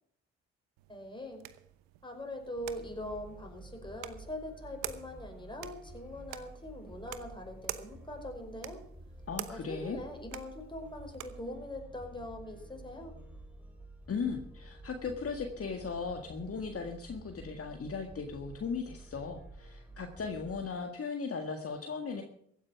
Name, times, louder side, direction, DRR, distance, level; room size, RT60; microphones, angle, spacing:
sound 1, 0.8-11.5, right 14 dB, 85° right, 0.9 m, -48 dB
voice 1, 0.9-1.4 2.0-8.8 9.5-13.1, left 1 dB, 15° left, 3 dB, 5.2 m, -42 dB
sound 2, 2.6-20.7, right 1 dB, 5° right, 3.6 m, -51 dB
voice 2, 9.3-10.0 14.1-22.2, left 5 dB, 40° left, 4 dB, 1.8 m, -37 dB
15.5 x 9.5 x 5.9 m, 0.69 s
hypercardioid pair, 50°, 34 cm